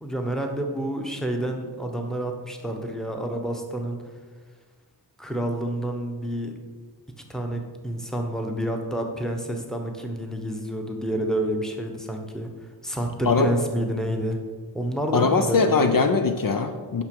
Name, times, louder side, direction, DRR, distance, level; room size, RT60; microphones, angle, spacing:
voice 1, 0.0-4.0 5.2-6.5 7.3-12.5 12.8-14.4 14.7-15.9, right 1 dB, ahead, 3 dB, 1.0 m, -29 dB
voice 2, 15.1-17.0, left 4 dB, 55° left, 7 dB, 0.6 m, -21 dB
9.4 x 5.9 x 6.0 m, 1.5 s
wide cardioid pair, 145°, 41 cm